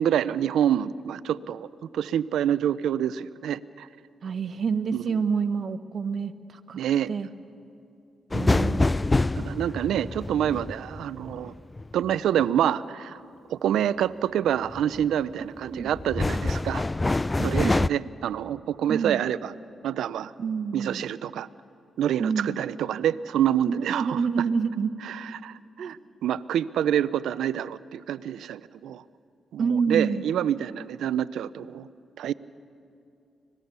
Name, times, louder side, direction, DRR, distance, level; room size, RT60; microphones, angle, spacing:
voice 1, 0.0-1.7 1.9-3.9 4.9-5.1 6.8-7.1 9.4-11.5 11.9-13.2 13.5-16.8 17.4-19.5 19.8-20.3 20.7-21.5 22.0-24.2 25.0-29.0 29.5-31.9 32.2-32.3, right 10 dB, 85° right, 17 dB, 0.5 m, -27 dB
voice 2, 4.2-6.8 7.1-7.3 8.3-8.9 15.4-15.9 17.4-17.7 18.9-19.2 20.4-21.0 22.2-22.6 23.7-25.1 25.8-25.9 29.6-30.2, right 5 dB, 60° right, 11 dB, 1.0 m, -28 dB
sound 1, 8.3-12.2 14.7-15.1 15.6-17.9, left 2 dB, 25° left, 0.4 m, -26 dB
25.5 x 18.5 x 6.9 m, 2.6 s
cardioid pair, 60°, 0 cm